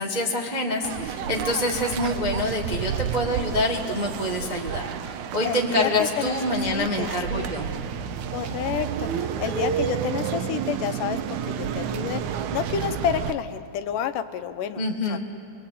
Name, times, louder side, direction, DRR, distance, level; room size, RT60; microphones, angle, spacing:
voice 1, 0.0-7.7 14.8-15.2, left 1 dB, 30° right, 0 dB, 0.8 m, -26 dB
sound 1, 0.8-13.3, right 8 dB, 70° right, 2.1 m, -30 dB
voice 2, 5.4-7.5 8.3-11.2 11.4-15.2, left 9 dB, 80° left, 9 dB, 2.5 m, -30 dB
28.5 x 21.5 x 8.5 m, 2.4 s
omnidirectional pair, 3.8 m